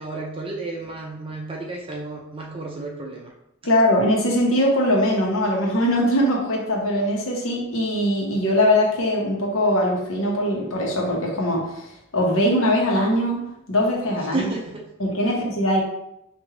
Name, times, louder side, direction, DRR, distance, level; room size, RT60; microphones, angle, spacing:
voice 1, 0.0-3.3 14.3-14.8 15.3-15.4, right 3 dB, 25° right, 0 dB, 0.4 m, -32 dB
voice 2, 3.6-13.4 13.7-14.5 15.0-15.8, left 1 dB, 85° left, -1 dB, 1.1 m, -21 dB
4.8 x 2.6 x 3.1 m, 0.81 s
head